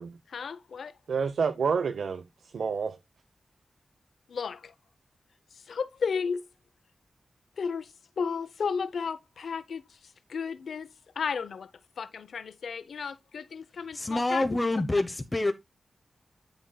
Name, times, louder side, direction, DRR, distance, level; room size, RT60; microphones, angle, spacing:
voice 1, 0.3-0.9 4.3-4.7 5.7-6.4 7.6-7.9 8.2-9.8 10.3-10.9 11.2-11.7 12.0-14.4, left 5 dB, 85° left, 0.6 m, -33 dB
voice 2, 1.1-3.0, right 5 dB, 85° right, 0.7 m, -29 dB
voice 3, 13.9-15.5, left 2 dB, 20° left, 0.8 m, -27 dB
9.3 x 6.8 x 2.2 m
wide cardioid pair, 125°, 0 cm